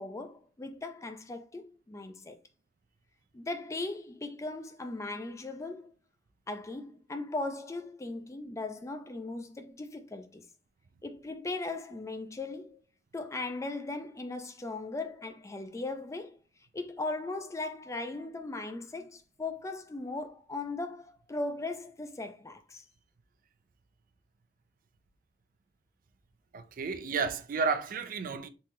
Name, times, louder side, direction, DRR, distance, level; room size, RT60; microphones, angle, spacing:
voice 1, 0.0-2.4 3.3-5.9 6.5-10.5 11.0-12.8 13.1-16.4 16.7-22.8, left 2 dB, 15° left, 0.4 m, -38 dB
voice 2, 26.5-28.5, right 5 dB, 50° right, 0.4 m, -32 dB
3.6 x 2.8 x 3.0 m
head